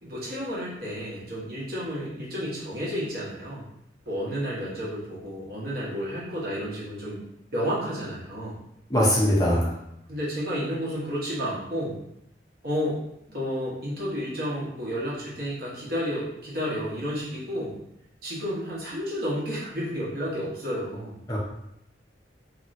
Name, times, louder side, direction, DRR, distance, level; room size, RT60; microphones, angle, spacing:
voice 1, 0.0-3.6 4.1-7.2 7.5-8.6 10.1-12.0 12.6-13.0 13.3-17.8 18.2-21.2, equal, 55° right, -7 dB, 1.1 m, -31 dB
voice 2, 8.9-9.7 21.3-21.4, equal, 20° left, -6 dB, 0.7 m, -21 dB
2.9 x 2.9 x 2.6 m, 0.78 s
head